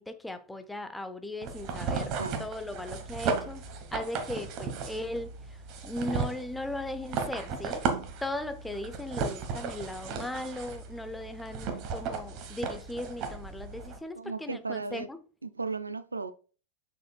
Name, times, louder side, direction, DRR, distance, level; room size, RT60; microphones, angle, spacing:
voice 1, 0.0-3.6 3.9-7.8 8.2-15.2, left 1 dB, 5° left, 0.6 m, -38 dB
sound 1, 1.4-14.0, right 5 dB, 40° right, 1.2 m, -35 dB
voice 2, 2.0-2.5 14.2-15.1 15.4-16.3, right 4 dB, 80° right, 0.4 m, -36 dB
6.6 x 6.4 x 2.3 m
figure-of-eight pair, 90°, 0 cm